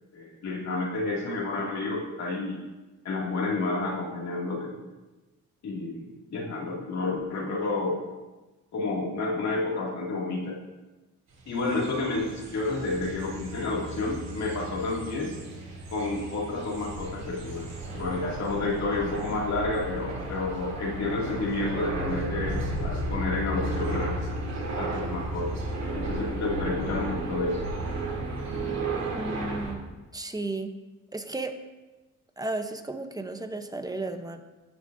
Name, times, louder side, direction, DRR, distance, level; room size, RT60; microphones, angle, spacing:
voice 1, 0.1-2.6 3.0-4.7 5.6-6.0 6.3-7.9 8.7-10.6 11.5-15.3 15.9-17.6 17.9-24.1 24.7-25.7 25.9-27.6, left 3 dB, 65° left, -2 dB, 2.5 m, -30 dB
sound 1, 11.4-29.7, right 2 dB, 60° right, 2.9 m, -34 dB
voice 2, 29.1-29.8 30.1-30.8 31.1-31.6 32.4-34.4, right 2 dB, 10° right, 7 dB, 0.9 m, -34 dB
16.0 x 6.5 x 2.7 m, 1.2 s
cardioid pair, 90°, 30 cm